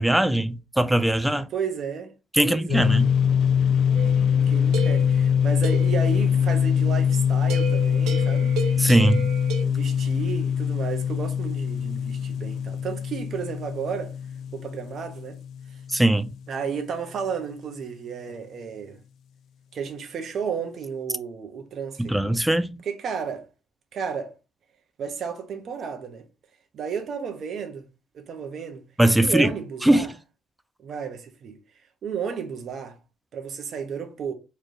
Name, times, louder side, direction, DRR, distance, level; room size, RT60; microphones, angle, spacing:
voice 1, 0.0-1.5 2.3-3.1 8.8-9.3 15.9-16.3 22.0-22.8 29.0-29.5 29.8-30.1, right 1 dB, 5° right, 0.4 m, -20 dB
voice 2, 1.5-2.1 2.4-2.9 4.5-8.5 9.6-14.1 14.5-15.4 15.7-15.8 16.5-19.0 19.7-22.1 22.8-23.5 23.9-24.3 25.0-26.3 26.7-27.9 28.1-28.8 29.2-30.1 30.8-31.6 32.0-33.0 33.3-34.3, right 6 dB, 50° right, 0.8 m, -32 dB
sound 1, 2.7-16.2, left 8 dB, 60° left, 0.3 m, -23 dB
sound 2, 3.9-6.0 7.5-9.6, right 5 dB, 85° right, 0.6 m, -33 dB
4.2 x 3.2 x 2.6 m
cardioid pair, 135°, 0 cm